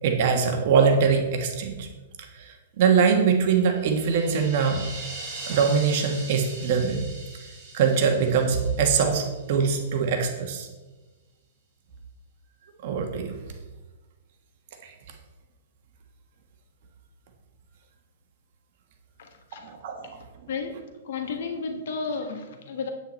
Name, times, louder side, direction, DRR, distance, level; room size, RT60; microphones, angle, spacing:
voice 1, 0.0-1.9 2.2-4.9 5.5-7.0 7.7-10.7 12.8-13.4 14.8-14.9 19.6-20.1, right 6 dB, 45° right, 4 dB, 1.4 m, -23 dB
sound 1, 3.4-9.7, right 3 dB, 15° right, 2.7 m, -41 dB
voice 2, 19.2-19.6 20.5-20.8 21.1-22.9, left 4 dB, 60° left, 4 dB, 1.5 m, -32 dB
9.0 x 8.8 x 4.4 m, 1.2 s
hypercardioid pair, 165°, 0 cm